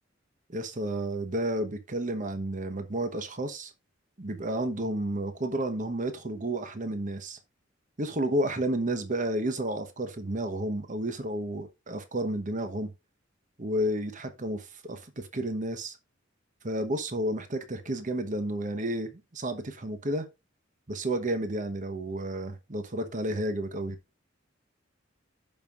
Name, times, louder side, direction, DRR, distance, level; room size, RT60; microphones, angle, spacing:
voice 1, 0.5-3.7 4.2-7.4 8.0-12.9 13.6-16.0 16.6-20.3 20.9-24.0, right 1 dB, 40° right, 1.0 m, -31 dB
15.5 x 5.5 x 2.5 m
head